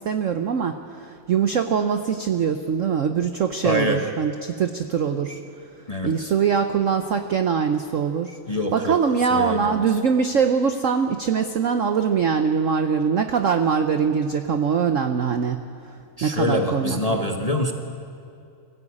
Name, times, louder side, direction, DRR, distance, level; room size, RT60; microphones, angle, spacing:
voice 1, 0.0-5.4 6.0-8.4 8.7-15.6 16.2-17.2, right 6 dB, 70° right, 7 dB, 0.7 m, -22 dB
voice 2, 3.6-4.0 5.9-6.3 8.5-9.0 9.3-9.8 16.2-17.7, left 1 dB, 25° left, 3 dB, 0.8 m, -25 dB
23.0 x 15.0 x 8.6 m, 2.5 s
omnidirectional pair, 2.3 m